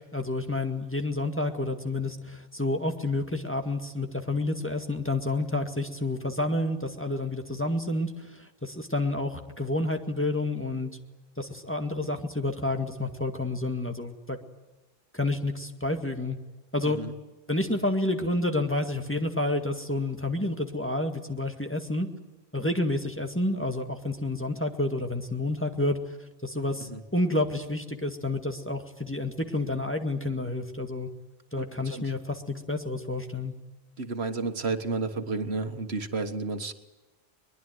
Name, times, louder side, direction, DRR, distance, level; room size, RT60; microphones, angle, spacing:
voice 1, 0.1-10.9 11.4-14.4 15.1-16.4 16.7-17.0 17.5-22.1 22.5-26.0 26.4-31.1 31.5-33.5, left 2 dB, 10° left, 4 dB, 2.0 m, -29 dB
voice 2, 34.0-36.7, right 3 dB, 80° right, 8 dB, 1.9 m, -31 dB
22.5 x 21.5 x 9.5 m, 1.1 s
omnidirectional pair, 1.1 m